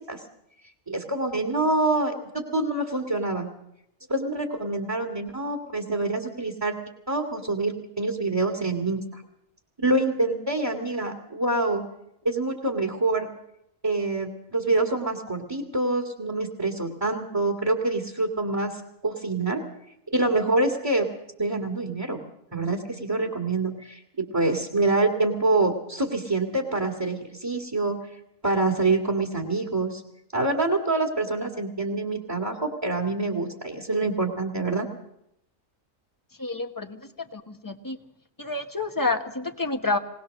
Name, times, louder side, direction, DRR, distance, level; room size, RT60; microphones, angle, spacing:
voice 1, 0.9-3.5 4.1-6.8 7.1-9.2 9.8-11.8 12.2-13.3 13.8-19.6 20.1-21.1 21.4-22.2 22.5-28.0 28.4-30.0 30.3-34.9, right 2 dB, 20° right, 2 dB, 2.0 m, -26 dB
voice 2, 36.4-38.0 38.4-40.0, left 3 dB, 15° left, 6 dB, 1.2 m, -29 dB
21.0 x 19.0 x 6.5 m, 0.80 s
omnidirectional pair, 1.4 m